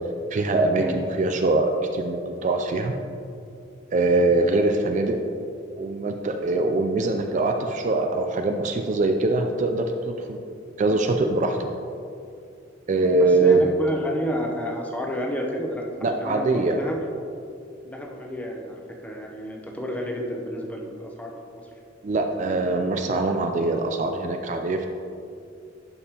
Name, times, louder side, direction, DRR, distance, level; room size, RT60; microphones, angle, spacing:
voice 1, 0.3-2.9 3.9-5.2 5.8-10.4 10.8-11.7 12.9-13.6 16.0-16.8 22.0-24.9, right 2 dB, 40° right, 5 dB, 0.4 m, -23 dB
voice 2, 13.1-15.8 16.1-17.0 17.8-21.3, equal, 10° left, 0 dB, 0.8 m, -30 dB
11.0 x 5.3 x 2.9 m, 2.5 s
head